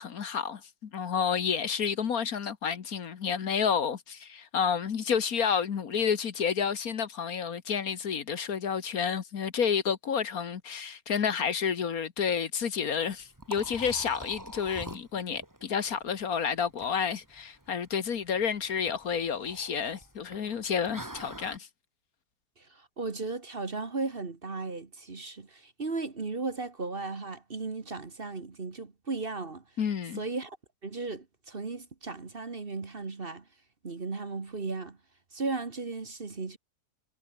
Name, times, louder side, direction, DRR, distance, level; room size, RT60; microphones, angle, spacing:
voice 1, 0.0-21.7 29.8-30.2, left 7 dB, 60° left, 1.7 m, -30 dB
Liquid, 12.9-21.6, right 1 dB, 10° right, 2.7 m, -46 dB
voice 2, 22.6-29.6 30.2-30.6 30.8-33.4 33.8-35.0 35.3-36.6, right 3 dB, 35° right, 1.8 m, -36 dB
omnidirectional pair, 1.7 m